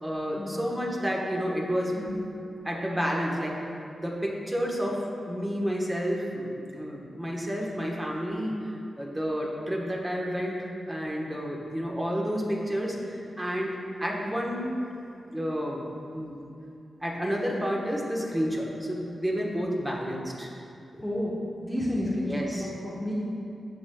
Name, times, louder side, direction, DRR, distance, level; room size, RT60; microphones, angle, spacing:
voice 1, 0.0-2.0 2.6-3.6 4.0-5.0 5.3-8.6 9.0-14.7 15.3-15.8 16.1-16.4 17.0-20.5 22.3-22.7, equal, 15° right, -2 dB, 1.2 m, -30 dB
voice 2, 21.0-23.1, left 1 dB, 5° left, -6 dB, 1.0 m, -31 dB
15.0 x 5.1 x 2.3 m, 2.7 s
wide cardioid pair, 90°, 0 cm